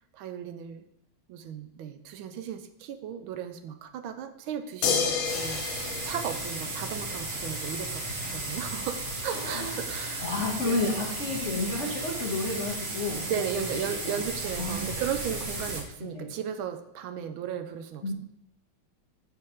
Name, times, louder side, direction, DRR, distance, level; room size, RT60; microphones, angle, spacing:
voice 1, 0.1-0.8 1.3-5.7 6.0-8.0 8.3-10.3 10.6-10.8 13.3-18.1, right 9 dB, 80° right, 9 dB, 1.4 m, -35 dB
sound 1, 4.8-7.3 9.0-9.1, left 6 dB, 75° left, 1.6 m, -30 dB
sound 2, 5.2-15.8, right 2 dB, 35° right, 1.6 m, -35 dB
voice 2, 9.3-9.7 10.2-13.3 13.6-13.7 14.0-14.2 14.6-15.0 16.1-16.3 18.0-18.1, left 2 dB, 45° left, -1 dB, 1.1 m, -31 dB
7.5 x 4.7 x 5.1 m, 0.87 s
omnidirectional pair, 2.3 m